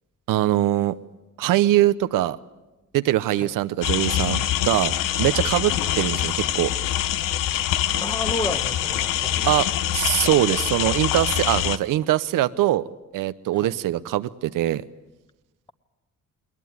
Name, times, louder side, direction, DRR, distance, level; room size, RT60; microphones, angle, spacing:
voice 1, 0.3-1.0 1.4-2.4 2.9-6.7 9.4-9.7 9.9-12.8 13.1-14.8, right 14 dB, 75° right, 0.8 m, -22 dB
sound 1, 3.8-11.8, left 12 dB, 80° left, 0.9 m, -24 dB
voice 2, 8.0-9.6 13.5-13.7, left 2 dB, 15° left, 1.2 m, -32 dB
20.5 x 20.0 x 9.5 m
cardioid pair, 95°, 32 cm